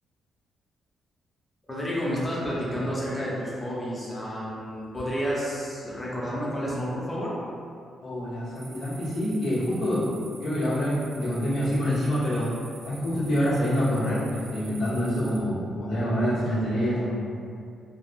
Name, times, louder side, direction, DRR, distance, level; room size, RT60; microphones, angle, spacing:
voice 1, 1.7-7.4, equal, 15° left, -6 dB, 0.7 m, -30 dB
voice 2, 8.0-12.5 12.8-17.1, equal, 70° left, -10 dB, 1.2 m, -26 dB
sound 1, 8.6-15.4, right 3 dB, 50° right, 0.4 m, -48 dB
3.4 x 2.4 x 2.5 m, 2.3 s
cardioid pair, 120°, 0 cm